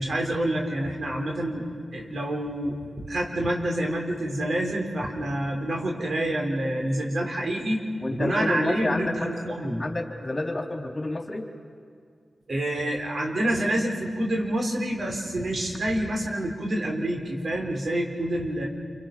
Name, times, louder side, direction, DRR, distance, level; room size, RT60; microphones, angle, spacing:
voice 1, 0.0-1.6 1.9-7.8 8.1-9.8 12.5-18.7, right 1 dB, 65° right, 1 dB, 4.2 m, -27 dB
voice 2, 8.0-9.3 9.6-11.5, left 2 dB, 35° left, 1 dB, 3.8 m, -29 dB
28.0 x 25.5 x 6.1 m, 2.1 s
cardioid pair, 50°, 0 cm